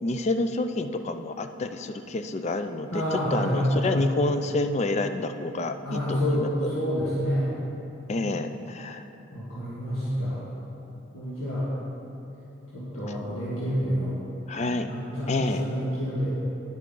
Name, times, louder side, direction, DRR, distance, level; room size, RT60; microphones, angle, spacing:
voice 1, 0.0-6.7 8.1-9.0 14.5-14.9 15.3-15.7, left 2 dB, 35° left, 8 dB, 0.3 m, -28 dB
voice 2, 2.9-4.1 5.8-7.5 9.3-10.4 11.1-11.7 12.7-14.2 14.9-16.3, equal, 90° left, -10 dB, 1.8 m, -28 dB
10.5 x 7.3 x 3.8 m, 2.9 s
head